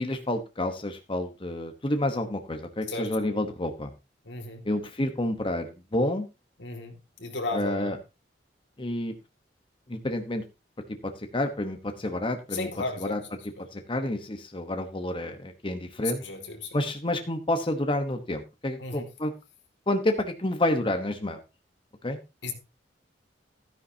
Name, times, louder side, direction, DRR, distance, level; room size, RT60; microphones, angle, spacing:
voice 1, 0.0-3.9 4.6-6.3 7.5-8.0 8.8-9.1 9.9-10.4 11.2-12.7 13.0-13.2 13.7-16.2 16.7-19.3 19.9-21.4 22.0-22.2, left 1 dB, 30° left, 1.1 m, -29 dB
voice 2, 4.3-4.6 6.6-6.9 7.2-8.0 12.5-13.2 16.0-16.7 18.8-19.1 22.4-22.5, left 3 dB, 80° left, 2.5 m, -34 dB
13.5 x 9.8 x 2.8 m
head